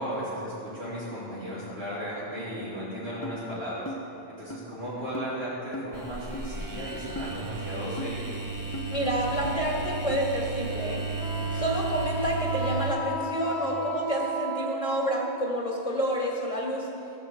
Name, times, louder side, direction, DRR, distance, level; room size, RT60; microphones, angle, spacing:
voice 1, 0.0-8.3, equal, 80° right, -14 dB, 4.6 m, -35 dB
sound 1, 3.2-3.4 3.9-4.0 4.5-4.6 5.1-5.3 5.7-5.9 6.3-6.5 7.2-7.3 8.0-8.1 8.7-8.9 9.4-9.5 10.1-10.2, left 1 dB, 15° left, 0.8 m, -36 dB
sound 2, 5.9-12.9, right 4 dB, 20° right, 0.8 m, -34 dB
voice 2, 8.9-16.9, equal, 30° left, -3 dB, 1.7 m, -29 dB
Wind instrument woodwind instrument, 11.2-15.6, equal, 90° left, 1.5 m, -34 dB
19.5 x 6.9 x 8.0 m, 2.9 s
omnidirectional pair, 1.1 m